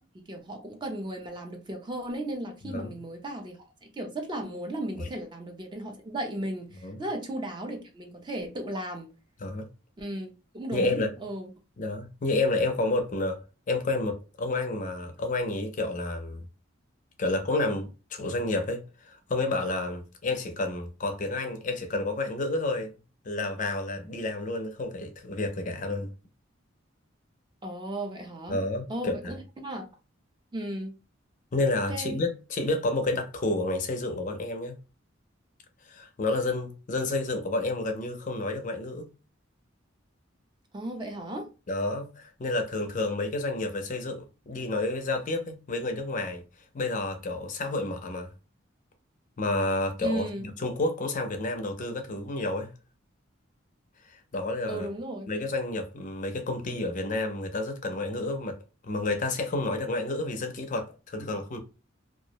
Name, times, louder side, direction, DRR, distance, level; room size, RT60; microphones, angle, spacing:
voice 1, 0.0-3.6 3.9-9.1 10.0-11.5 27.6-28.6 28.9-29.8 30.5-31.0 31.9-32.1 40.7-41.5 50.0-50.4 54.7-55.3, right 1 dB, 25° right, 0.4 m, -35 dB
voice 2, 10.7-11.2 11.8-16.4 17.2-22.9 23.2-26.1 28.5-29.3 31.5-34.8 35.9-39.1 41.7-46.4 46.7-48.3 49.4-52.7 54.0-54.9 55.3-58.6 58.8-61.6, left 2 dB, 40° left, 0.4 m, -30 dB
2.3 x 2.0 x 2.7 m
head